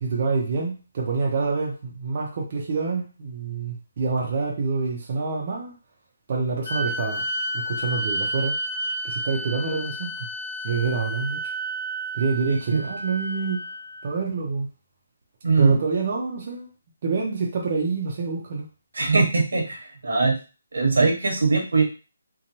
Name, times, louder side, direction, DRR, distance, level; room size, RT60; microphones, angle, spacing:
voice 1, 0.0-5.7 6.3-7.2 7.5-8.6 9.0-10.3 10.6-11.5 12.1-13.6 14.0-14.7 15.6-16.7 17.0-18.7, right 4 dB, 30° right, -2 dB, 0.5 m, -27 dB
sound 1, 6.6-14.1, equal, 45° left, 0.7 m, -31 dB
voice 2, 15.4-15.8 18.9-20.3 20.7-21.8, right 4 dB, 85° right, 2 dB, 1.0 m, -21 dB
2.9 x 2.2 x 2.7 m, 0.33 s
hypercardioid pair, 175°, 0 cm